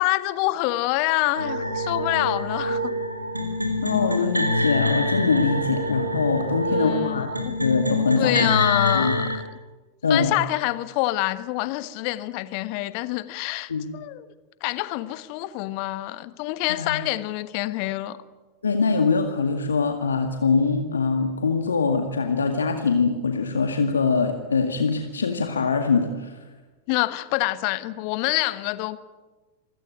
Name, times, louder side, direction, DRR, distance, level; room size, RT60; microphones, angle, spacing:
voice 1, 0.0-2.9 6.7-7.6 8.2-9.4 10.1-14.3 14.6-18.2 26.9-29.0, left 18 dB, 45° left, 1.3 m, -26 dB
sound 1, 1.3-9.4, left 1 dB, 85° right, 2.9 m, -26 dB
voice 2, 3.8-7.3 7.6-8.5 8.9-9.2 10.0-10.3 13.7-13.9 16.7-17.0 18.6-26.4, left 4 dB, 70° left, 1.9 m, -23 dB
27.0 x 17.0 x 9.9 m
figure-of-eight pair, 90°, 0 cm